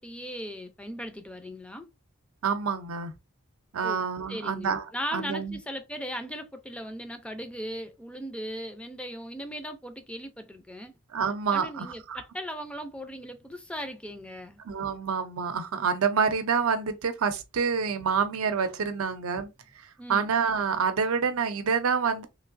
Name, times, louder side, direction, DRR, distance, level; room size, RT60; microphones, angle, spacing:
voice 1, 0.0-1.9 3.8-11.0 11.5-14.6 20.0-20.3, equal, 5° left, 0.4 m, -38 dB
voice 2, 2.4-3.1 3.7-4.8 5.1-5.6 11.1-12.2 14.6-19.5 20.1-22.3, right 6 dB, 90° right, 0.6 m, -27 dB
3.1 x 2.7 x 2.5 m
head